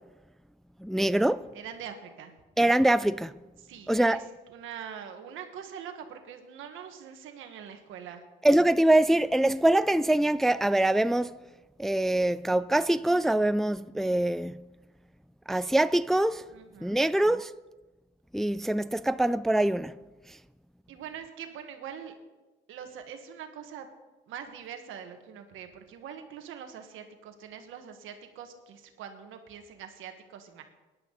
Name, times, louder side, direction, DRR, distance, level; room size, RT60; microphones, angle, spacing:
voice 1, 0.8-1.4 2.6-3.3 3.9-4.2 8.4-11.3 11.8-14.6 15.5-16.4 16.8-17.5 18.3-20.0, right 1 dB, ahead, 0.3 m, -24 dB
voice 2, 1.5-2.3 3.6-4.2 4.5-8.2 16.5-17.1 20.9-22.1 22.7-23.9 24.3-30.6, right 8 dB, 90° right, 1.6 m, -43 dB
18.5 x 11.0 x 4.0 m
cardioid pair, 90°, 20 cm